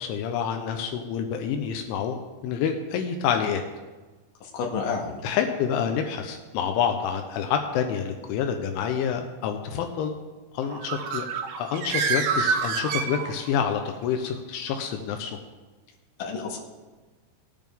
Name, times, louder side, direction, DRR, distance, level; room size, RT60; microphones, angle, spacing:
voice 1, 0.0-3.6 5.2-10.2 10.5-11.3 11.6-15.4, left 7 dB, 80° left, 5 dB, 3.2 m, -28 dB
voice 2, 4.4-5.2 16.2-16.6, left 5 dB, 55° left, -1 dB, 2.8 m, -30 dB
Bird, 10.6-13.7, right 5 dB, 75° right, 2.3 m, -27 dB
19.0 x 9.2 x 3.5 m, 1.3 s
omnidirectional pair, 5.5 m